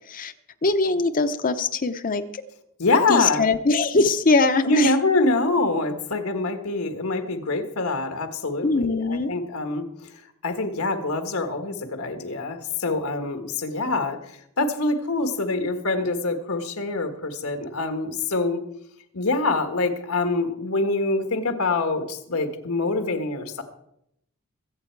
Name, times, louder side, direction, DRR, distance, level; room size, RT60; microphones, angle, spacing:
voice 1, 0.6-2.4 3.1-4.9 8.6-9.3, left 3 dB, 40° left, 9 dB, 0.7 m, -22 dB
voice 2, 2.8-3.4 4.6-18.6 19.1-23.6, left 2 dB, 85° left, 6 dB, 1.6 m, -25 dB
22.0 x 8.4 x 4.6 m, 0.77 s
head